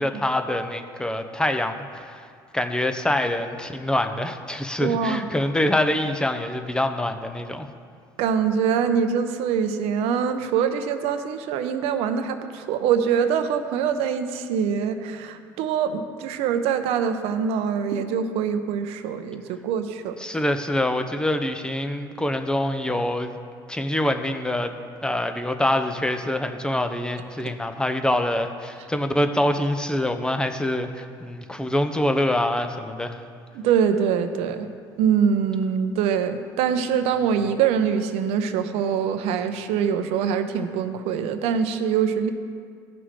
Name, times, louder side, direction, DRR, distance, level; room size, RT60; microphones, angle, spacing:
voice 1, 0.0-2.3 2.5-7.7 20.2-23.4 23.7-33.2, left 1 dB, 5° left, 7 dB, 0.8 m, -25 dB
voice 2, 4.8-5.2 8.2-20.2 33.5-34.7 35.0-42.3, right 7 dB, 70° right, 8 dB, 0.8 m, -24 dB
15.5 x 6.0 x 3.2 m, 2.1 s
hypercardioid pair, 80°, 11 cm